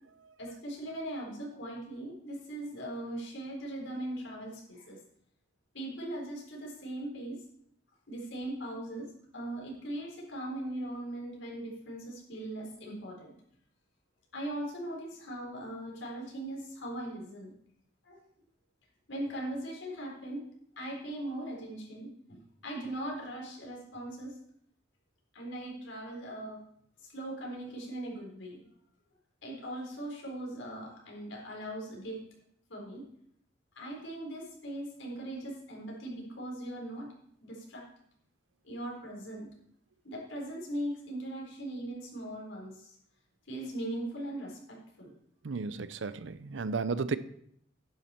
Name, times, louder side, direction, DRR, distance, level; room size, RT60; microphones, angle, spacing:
voice 1, 0.4-5.0 5.7-7.4 8.1-9.1 9.3-13.3 14.3-17.5 18.0-18.2 19.1-20.4 20.8-24.4 25.3-26.6 27.0-28.6 29.4-32.2 32.7-33.0 33.8-37.1 37.4-37.8 38.6-39.5 40.0-43.0 43.5-45.1, right 1 dB, 85° left, 4.2 m, -39 dB
voice 2, 45.4-47.2, right 4 dB, 80° right, 0.6 m, -33 dB
10.5 x 9.2 x 4.4 m
head